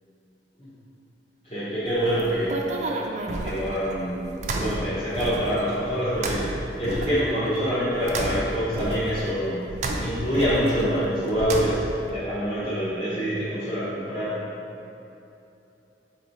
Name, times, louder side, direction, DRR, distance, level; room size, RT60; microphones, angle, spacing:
voice 1, 1.4-2.6 3.4-4.3 4.6-11.8 12.1-14.4, equal, 35° left, -13 dB, 0.9 m, -26 dB
sound 1, 1.9-12.1, right 2 dB, 40° right, 0.3 m, -32 dB
4.3 x 3.0 x 3.9 m, 2.9 s
head